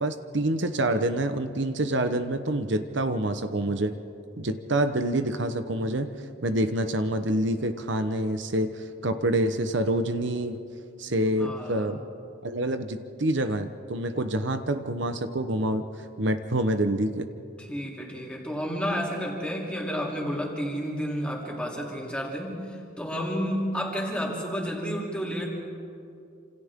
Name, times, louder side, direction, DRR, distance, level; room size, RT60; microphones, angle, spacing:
voice 1, 0.0-3.9 4.4-6.1 6.4-10.6 11.0-12.0 12.4-15.8 16.2-17.3, right 1 dB, 60° right, 8 dB, 1.0 m, -27 dB
voice 2, 11.4-11.9 17.6-25.5, equal, 5° left, -3 dB, 3.3 m, -31 dB
28.5 x 27.0 x 3.7 m, 2.6 s
head